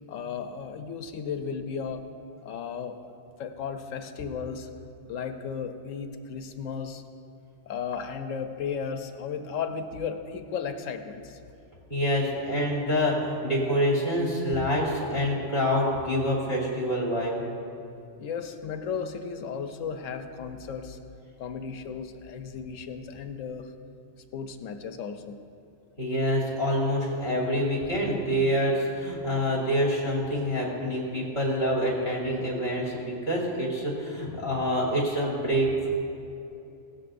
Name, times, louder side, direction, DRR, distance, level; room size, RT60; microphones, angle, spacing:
voice 1, 0.1-2.0 2.4-3.1 3.4-4.7 5.1-7.0 7.7-11.4 18.2-21.0 21.4-23.7 24.3-25.4, left 6 dB, 90° left, 7 dB, 1.1 m, -35 dB
voice 2, 11.9-17.4 26.0-35.9, equal, 55° left, -4 dB, 3.0 m, -26 dB
17.0 x 13.0 x 2.6 m, 2.7 s
omnidirectional pair, 1.3 m